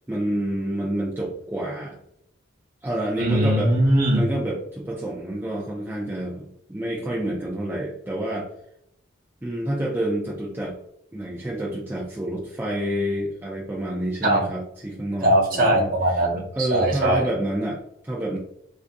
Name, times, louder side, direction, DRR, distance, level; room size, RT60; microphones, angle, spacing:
voice 1, 0.1-2.0 2.8-3.8 4.1-8.5 9.4-10.8 11.1-15.9 16.6-18.4, right 1 dB, 10° right, -4 dB, 0.4 m, -28 dB
voice 2, 3.2-4.3 14.2-14.4 15.2-17.2, right 1 dB, 45° right, -3 dB, 0.9 m, -20 dB
3.4 x 2.6 x 2.6 m, 0.74 s
head